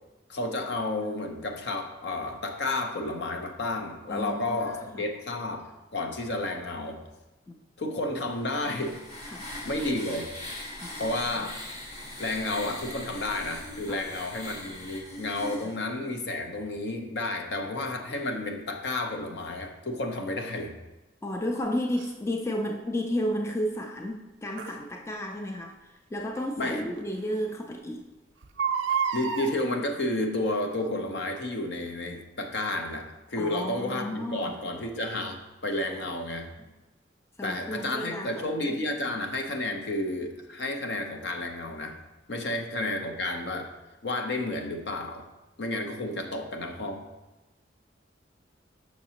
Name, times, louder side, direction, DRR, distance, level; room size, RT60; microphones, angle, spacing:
voice 1, 0.3-5.6 5.9-7.0 7.8-9.0 9.6-10.3 11.0-11.6 12.2-20.7 26.6-26.9 29.1-36.5 37.4-42.0 42.3-43.7 44.0-45.3 45.6-47.0, left 2 dB, 65° left, 4 dB, 0.7 m, -31 dB
voice 2, 4.1-5.0 7.5-7.6 9.3-9.5 10.8-11.2 13.9-14.0 17.6-17.7 21.2-28.1 33.3-34.6 37.4-38.5 39.1-39.2 42.5-42.6, equal, 15° left, 3 dB, 0.3 m, -33 dB
sound 1, 8.2-15.7, left 1 dB, 35° left, 1.3 m, -40 dB
Crying sobbing, 22.0-22.1 24.6-24.8 26.4-26.5 27.0-27.1 27.3-27.4 28.4-29.5 30.5-30.8 31.4-31.5, right 6 dB, 85° right, 0.5 m, -29 dB
6.4 x 6.0 x 2.8 m, 1.1 s
head